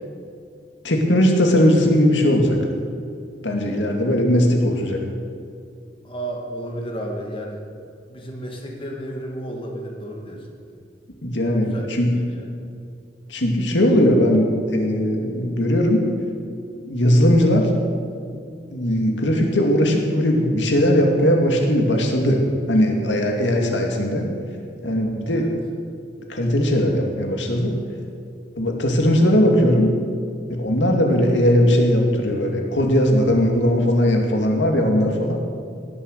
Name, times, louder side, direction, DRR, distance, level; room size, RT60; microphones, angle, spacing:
voice 1, 0.8-2.6 3.4-5.0 11.2-12.1 13.3-16.1 16.9-17.7 18.7-22.4 22.7-24.3 24.8-25.4 26.3-27.7 28.6-29.9 30.5-35.4, equal, 90° left, 2 dB, 2.4 m, -19 dB
voice 2, 6.0-7.6 8.1-10.5 11.6-12.5 25.3-25.5, right 1 dB, 30° left, 0 dB, 2.2 m, -32 dB
18.5 x 11.0 x 6.7 m, 2.4 s
head